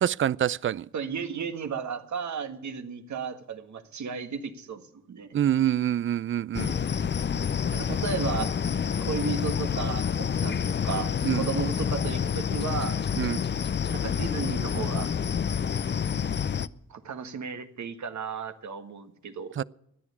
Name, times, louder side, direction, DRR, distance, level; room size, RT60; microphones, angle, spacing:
voice 1, 0.0-0.9 5.3-6.7 11.2-11.4 13.2-13.4 19.6-19.7, right 10 dB, 40° right, 0.4 m, -26 dB
voice 2, 0.9-5.3 7.7-8.5 9.0-13.0 13.9-15.1 16.9-19.5, right 6 dB, 60° right, 1.6 m, -34 dB
sound 1, 6.5-16.7, left 7 dB, 35° left, 0.6 m, -28 dB
13.5 x 10.0 x 8.4 m
supercardioid pair, 55°, 32 cm